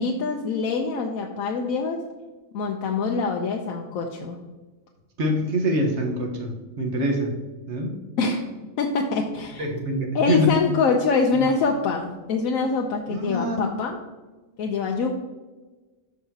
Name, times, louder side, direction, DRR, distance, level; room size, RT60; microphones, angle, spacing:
voice 1, 0.0-2.0 2.5-4.4 8.2-8.4 8.8-9.7 10.1-14.0 14.6-15.1, left 4 dB, 90° left, 2 dB, 1.1 m, -24 dB
voice 2, 5.2-7.4 7.7-8.0 9.6-10.8 11.3-11.5 13.1-13.7, equal, 55° right, 1 dB, 1.5 m, -25 dB
13.0 x 4.9 x 2.8 m, 1.2 s
omnidirectional pair, 1.4 m